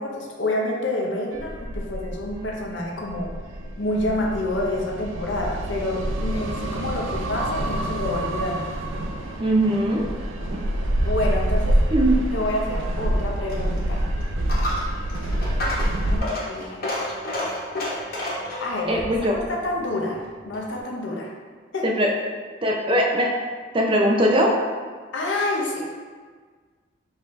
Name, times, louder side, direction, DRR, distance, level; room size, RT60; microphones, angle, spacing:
voice 1, 0.0-3.3 3.8-8.7 11.0-11.8 12.3-14.1 16.0-16.9 18.6-21.3 21.7-21.9 25.1-25.8, left 1 dB, 70° left, -1 dB, 0.7 m, -28 dB
sound 1, 1.3-16.2, right 1 dB, 80° right, 0.4 m, -27 dB
voice 2, 9.4-10.1 11.9-12.2 18.9-19.3 21.8-22.1 22.6-23.3 23.7-24.5, equal, 25° right, -1 dB, 0.5 m, -20 dB
Coin (dropping), 13.3-20.8, left 1 dB, 50° left, 1.0 m, -31 dB
5.0 x 2.7 x 3.2 m, 1.5 s
head